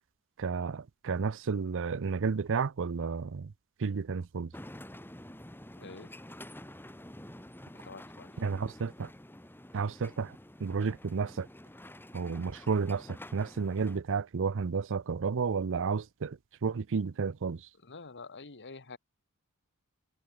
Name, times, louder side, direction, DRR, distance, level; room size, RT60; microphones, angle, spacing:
voice 1, 0.4-3.5 3.8-4.5 8.4-9.1 9.7-11.5 12.1-17.7, right 5 dB, 60° right, 0.5 m, -32 dB
sound 1, 4.5-14.0, left 1 dB, 10° left, 2.8 m, -49 dB
voice 2, 5.8-6.1 7.8-8.3 17.8-19.0, left 4 dB, 55° left, 1.8 m, -47 dB
head